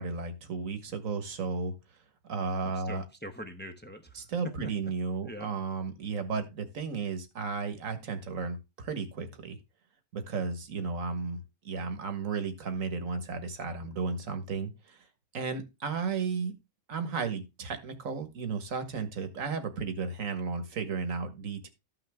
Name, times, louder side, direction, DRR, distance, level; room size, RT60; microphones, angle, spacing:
voice 1, 0.0-1.7 2.3-3.0 4.2-9.6 10.1-11.4 11.7-15.0 15.3-16.6 16.9-21.7, right 5 dB, 85° right, 1.8 m, -34 dB
voice 2, 2.6-4.7 5.2-5.5, equal, 10° left, 0.8 m, -43 dB
13.5 x 5.8 x 3.5 m
omnidirectional pair, 1.4 m